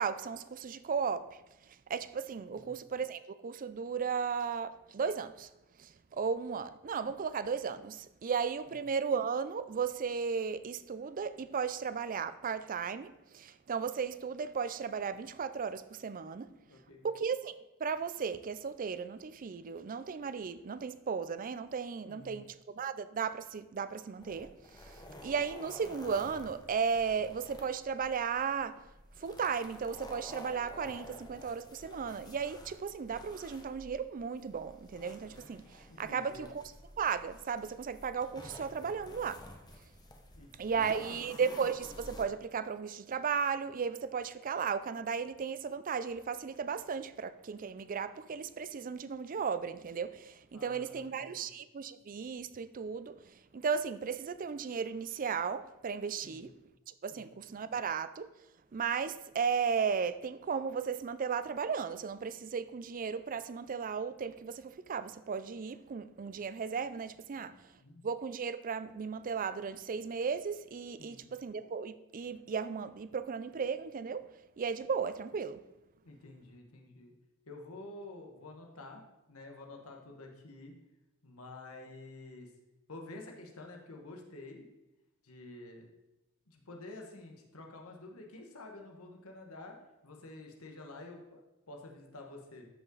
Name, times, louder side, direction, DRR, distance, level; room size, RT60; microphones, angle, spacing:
voice 1, 0.0-5.5 5.8-16.5 17.0-17.5 17.8-28.8 29.2-39.5 40.6-56.5 56.9-58.3 58.7-67.7 68.0-74.3 74.6-75.6, right 6 dB, 40° right, 0.4 m, -35 dB
voice 2, 16.6-17.1 22.1-22.4 35.9-36.5 40.3-41.0 50.5-51.5 56.2-56.4 57.1-57.3 67.3-67.5 67.8-68.0 71.0-71.2 76.0-77.1 77.5-79.0 79.3-80.7 81.2-82.5 82.9-84.7 85.2-85.9 86.5-89.8 90.0-92.7, left 2 dB, 85° left, 1.5 m, -49 dB
sound 1, 24.2-42.2, left 1 dB, 20° left, 1.0 m, -51 dB
13.0 x 5.7 x 4.0 m
head